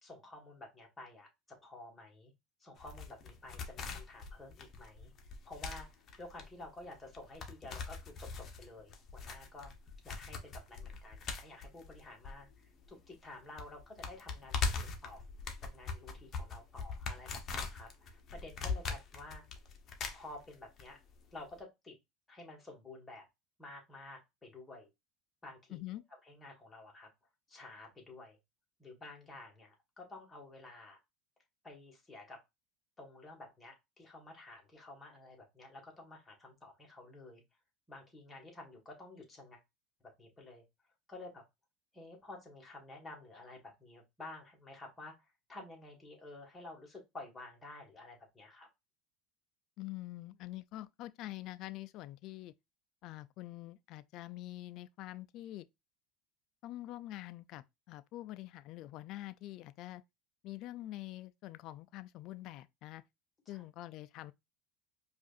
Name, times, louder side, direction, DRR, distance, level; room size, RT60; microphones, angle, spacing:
voice 1, 0.0-2.3 2.6-5.1 5.4-9.7 10.0-15.2 15.7-19.4 20.1-21.0 21.3-22.0 22.3-23.2 23.6-24.9 25.4-25.8 26.2-27.1 27.5-28.4 28.8-31.0 31.6-32.4 33.0-37.4 37.9-39.6 40.2-40.6 41.1-41.4 41.9-48.7 63.4-63.6, left 2 dB, 15° left, 1.7 m, -51 dB
sound 1, 2.8-12.9 13.1-13.2 13.6-20.8 21.1-21.2, left 4 dB, 40° left, 0.9 m, -41 dB
voice 2, 25.7-26.0 49.8-52.5 53.0-55.7 56.6-60.0 60.4-63.0 63.5-64.3, left 16 dB, 55° left, 0.3 m, -45 dB
4.8 x 2.5 x 2.5 m
supercardioid pair, 110°, 0 cm